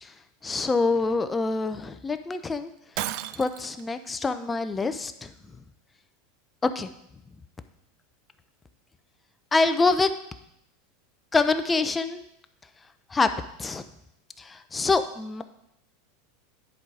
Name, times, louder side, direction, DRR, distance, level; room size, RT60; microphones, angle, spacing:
voice 1, 0.4-2.7 3.4-5.3 6.6-6.9 9.5-10.1 11.3-12.2 13.1-13.8 14.4-15.4, left 3 dB, 15° left, 9 dB, 0.5 m, -25 dB
Shatter, 3.0-3.8, right 14 dB, 55° right, 0.4 m, -33 dB
10.0 x 4.7 x 4.8 m, 0.78 s
supercardioid pair, 135°, 0 cm